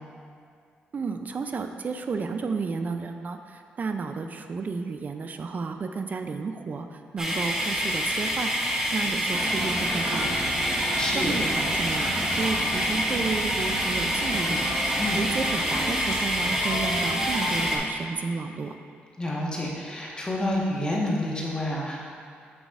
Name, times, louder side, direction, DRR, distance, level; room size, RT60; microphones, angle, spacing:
voice 1, 0.9-10.5 11.1-14.6 15.1-18.8, right 4 dB, 45° right, 7 dB, 0.5 m, -32 dB
sound 1, 7.2-17.8, equal, 15° right, 1.0 m, -27 dB
sound 2, 9.3-17.8, right 1 dB, 70° right, 1.3 m, -33 dB
voice 2, 11.0-11.4 15.0-15.2 19.2-22.1, left 1 dB, 20° left, -4 dB, 1.4 m, -28 dB
8.1 x 6.0 x 2.5 m, 2.2 s
cardioid pair, 80°, 4 cm